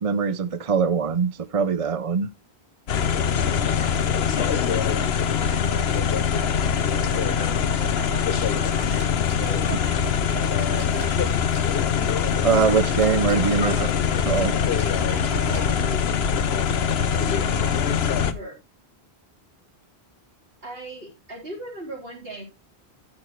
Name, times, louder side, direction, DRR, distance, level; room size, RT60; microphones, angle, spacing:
voice 1, 0.0-2.3 12.4-13.9 14.2-14.5, right 6 dB, 40° right, 0.6 m, -22 dB
sound 1, 2.9-18.3, left 7 dB, 75° left, 1.0 m, -23 dB
voice 2, 3.8-6.6 7.0-11.0 12.6-12.8 15.1-16.2 17.1-18.6 20.6-22.4, right 2 dB, 65° right, 4.2 m, -38 dB
sound 2, 8.3-16.3, right 3 dB, 80° right, 2.2 m, -40 dB
13.0 x 7.0 x 3.1 m
omnidirectional pair, 1.1 m